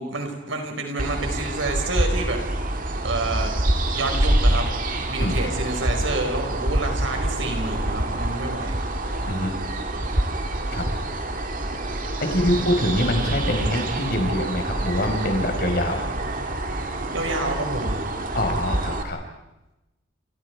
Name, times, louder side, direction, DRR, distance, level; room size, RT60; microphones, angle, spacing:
voice 1, 0.0-2.4 3.0-3.5 3.9-4.7 5.0-8.7 17.1-18.0, right 2 dB, 70° right, 4 dB, 5.4 m, -28 dB
sound 1, 1.0-19.0, right 1 dB, 40° right, 2.2 m, -26 dB
voice 2, 12.2-16.1 18.3-19.2, left 1 dB, 50° left, 4 dB, 4.7 m, -24 dB
29.5 x 28.0 x 4.8 m, 0.96 s
head